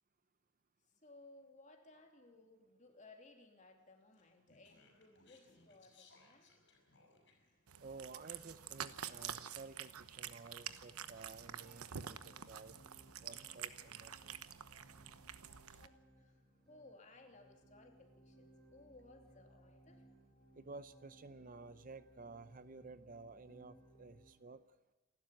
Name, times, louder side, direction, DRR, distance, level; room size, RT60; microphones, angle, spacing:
voice 1, 1.0-6.5 15.7-16.4 16.7-20.1, left 2 dB, 35° left, 2.9 m, -61 dB
Speech, 4.1-7.6, left 3 dB, 55° left, 6.6 m, -67 dB
Cat, 7.7-15.9, right 9 dB, 90° right, 1.0 m, -48 dB
voice 2, 7.8-12.7 13.2-14.3 20.6-24.6, right 3 dB, 40° right, 0.6 m, -53 dB
sound 1, 11.0-24.3, right 1 dB, 5° left, 7.6 m, -65 dB
27.5 x 12.5 x 9.1 m
head